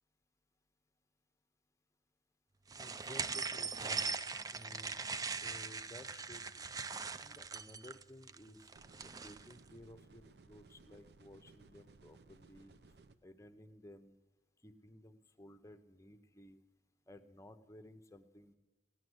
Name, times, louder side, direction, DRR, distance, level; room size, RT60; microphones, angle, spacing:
sound 1, 2.7-9.5, right 4 dB, 20° right, 0.4 m, -41 dB
voice 1, 2.8-4.1 4.5-6.8 7.2-8.6 9.0-12.7 13.2-14.2 14.6-16.6 17.1-18.5, left 1 dB, 15° left, 10 dB, 0.8 m, -56 dB
sound 2, 8.8-13.2, right 3 dB, 65° right, 0.7 m, -61 dB
17.5 x 9.9 x 7.9 m, 1.3 s
head